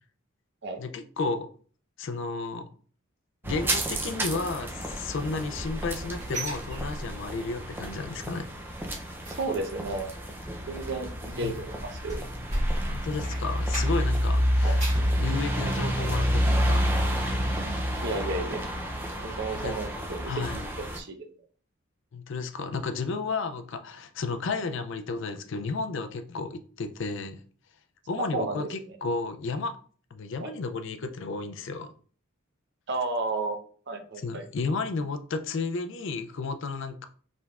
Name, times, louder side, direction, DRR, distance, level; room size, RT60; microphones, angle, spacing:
voice 1, 0.8-1.5 2.0-2.7 3.4-8.5 11.4-11.6 12.9-14.9 15.2-16.9 19.6-19.7 20.3-20.6 22.1-27.4 28.1-29.7 30.1-31.9 34.2-37.1, left 4 dB, 60° left, 8 dB, 0.4 m, -32 dB
sound 1, 3.4-21.0, equal, 10° right, 0.4 m, -29 dB
sound 2, 5.3-7.5 7.8-8.1 8.4-14.2 14.5-15.2 15.6-15.7 16.2-16.3, right 1 dB, 35° right, 1.7 m, -36 dB
voice 2, 9.4-10.1 10.7-12.2 14.6-14.8 18.0-18.6 19.2-20.6 20.9-21.3 28.3-28.7 30.4-30.5 32.9-33.6 33.9-34.4, right 2 dB, 55° right, 4 dB, 0.7 m, -32 dB
4.9 x 3.4 x 2.4 m, 0.43 s
head